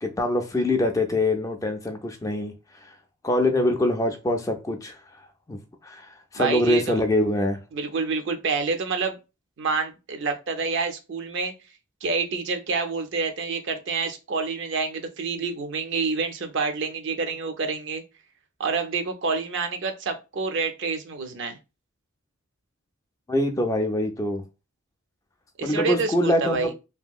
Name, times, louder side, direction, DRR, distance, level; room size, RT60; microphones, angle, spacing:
voice 1, 0.0-2.5 2.8-2.9 3.2-5.0 5.5-7.6 23.3-24.4 25.6-26.6, left 1 dB, 15° left, 0.3 m, -24 dB
voice 2, 6.3-6.9 7.7-9.2 9.6-11.5 12.0-18.0 18.6-21.6 25.6-26.7, right 4 dB, 55° right, 0.5 m, -28 dB
2.8 x 2.6 x 2.3 m
head